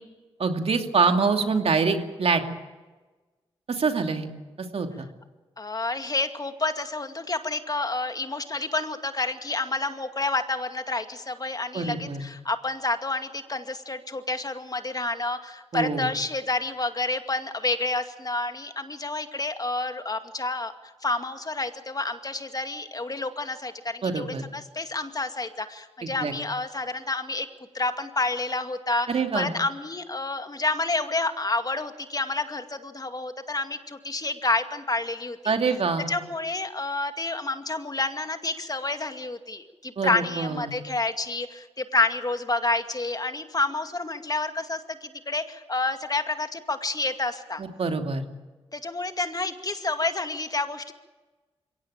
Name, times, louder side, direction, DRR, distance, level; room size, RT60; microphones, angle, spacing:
voice 1, 0.4-2.4 3.7-4.3 4.6-4.9 11.7-12.2 15.7-16.1 24.0-24.4 26.0-26.3 29.1-29.5 35.5-36.1 40.0-40.7 47.6-48.2, right 4 dB, 65° right, 5 dB, 2.6 m, -25 dB
voice 2, 5.6-20.7 21.0-24.3 24.5-27.5 27.7-35.5 36.1-47.6 48.7-50.9, left 2 dB, 35° left, 8 dB, 2.2 m, -29 dB
22.5 x 17.5 x 8.9 m, 1.2 s
supercardioid pair, 45°, 11 cm